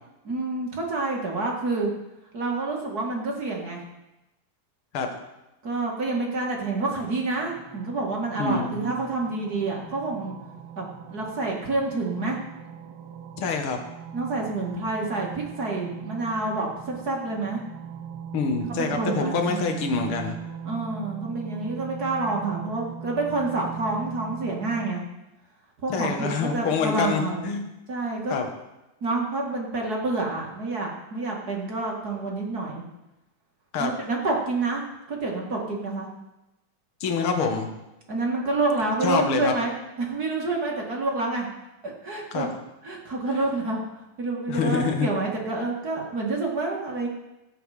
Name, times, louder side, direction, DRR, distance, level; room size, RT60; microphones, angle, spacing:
voice 1, 0.2-1.9 2.3-3.8 5.6-10.3 10.7-12.4 14.1-17.6 18.7-19.7 20.6-25.0 25.8-27.5 27.9-28.4 29.0-32.8 33.8-36.1 38.1-41.5 41.8-42.5 42.8-43.8 44.2-47.1, right 3 dB, 35° right, -1 dB, 1.8 m, -28 dB
sound 1, 7.3-24.9, right 7 dB, 80° right, 2.6 m, -40 dB
voice 2, 8.4-8.9 13.4-13.8 18.3-20.4 25.9-27.6 28.3-28.5 33.7-33.9 37.0-37.7 39.0-39.5 42.3-42.5 44.5-45.1, left 5 dB, 50° left, 3 dB, 1.8 m, -26 dB
17.0 x 8.9 x 5.0 m, 0.98 s
omnidirectional pair, 4.1 m